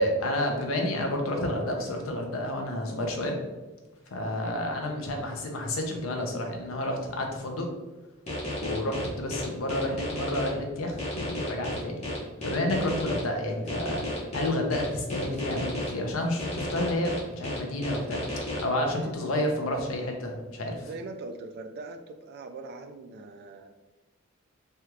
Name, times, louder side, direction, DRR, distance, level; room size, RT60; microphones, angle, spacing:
voice 1, 0.0-3.4 4.1-7.7 8.6-12.0 12.4-14.0 14.3-18.2 18.6-20.9, left 1 dB, 80° left, 2 dB, 0.6 m, -30 dB
voice 2, 4.3-4.6 18.8-19.1 20.8-23.7, right 3 dB, 50° right, 7 dB, 0.3 m, -41 dB
sound 1, 8.3-10.5 11.0-13.2 13.7-15.9 16.4-18.6, left 1 dB, 35° left, 0.8 m, -33 dB
3.3 x 2.3 x 2.9 m, 1.1 s
head